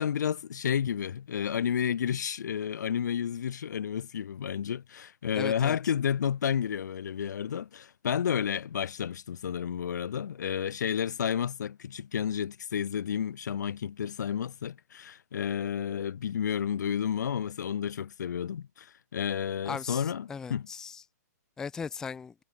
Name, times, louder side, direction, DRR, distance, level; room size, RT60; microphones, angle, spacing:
voice 1, 0.0-20.7, left 8 dB, 80° left, 0.8 m, -31 dB
voice 2, 5.4-5.8 19.6-20.0 20.3-21.0 21.6-22.3, left 6 dB, 5° left, 0.4 m, -37 dB
hypercardioid pair, 165°, 9 cm